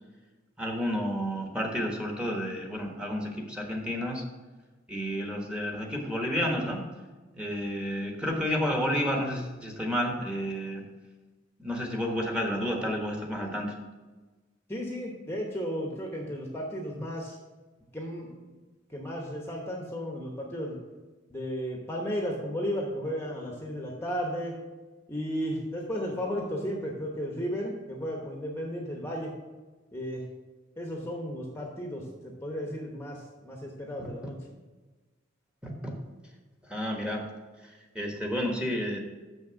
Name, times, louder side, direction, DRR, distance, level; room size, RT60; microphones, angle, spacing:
voice 1, 0.6-4.2 4.9-6.8 7.3-10.8 11.6-13.7 34.0-34.3 35.6-35.9 36.7-37.2 37.9-39.0, equal, 5° right, 0 dB, 1.3 m, -31 dB
voice 2, 14.7-17.4 17.9-18.3 18.9-20.8 21.3-24.6 25.1-29.3 29.9-30.2 30.8-34.3, equal, 15° left, 0 dB, 1.0 m, -34 dB
6.7 x 6.3 x 6.2 m, 1.3 s
head